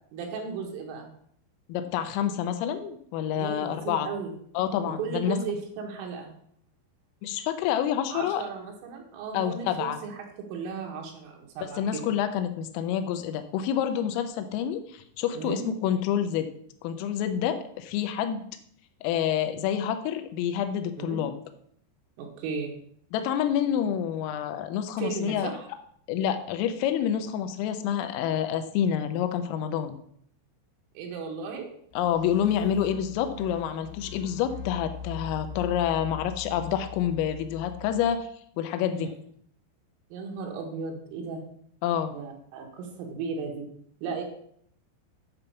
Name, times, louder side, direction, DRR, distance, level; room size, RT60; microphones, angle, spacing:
voice 1, 0.1-1.1 3.3-4.3 5.0-6.3 8.1-12.1 15.3-15.6 21.0-21.2 22.2-22.7 25.0-25.7 31.0-31.7 38.9-39.1 40.1-41.4 42.1-43.7 44.0-44.2, right 5 dB, 85° right, 1 dB, 4.2 m, -35 dB
voice 2, 1.7-4.1 4.6-5.4 7.2-8.4 9.3-10.0 11.8-16.5 16.8-18.5 19.0-21.3 23.1-25.5 26.1-30.0 32.0-38.3 38.6-39.1 41.8-42.1, left 9 dB, 85° left, 8 dB, 3.4 m, -28 dB
sound 1, 31.9-38.1, left 6 dB, 65° left, 3.6 m, -41 dB
9.7 x 5.2 x 6.9 m, 0.65 s
omnidirectional pair, 5.8 m